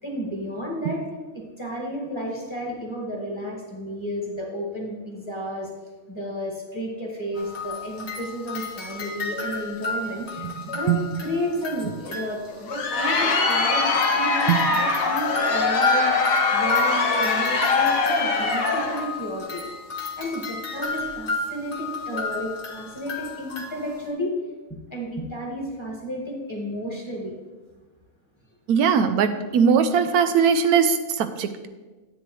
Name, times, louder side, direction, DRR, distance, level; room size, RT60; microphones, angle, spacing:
voice 1, 0.0-1.0 1.3-5.7 6.1-16.2 16.5-19.6 20.2-24.3 24.9-27.4, equal, 20° left, -2 dB, 1.6 m, -32 dB
sound 1, 7.3-12.8 13.5-24.1, left 2 dB, 50° left, 1.2 m, -31 dB
Crowd, 12.5-19.1, left 4 dB, 70° left, 1.3 m, -22 dB
voice 2, 28.7-31.7, right 7 dB, 85° right, 9 dB, 1.1 m, -20 dB
9.9 x 8.3 x 3.1 m, 1.2 s
omnidirectional pair, 1.5 m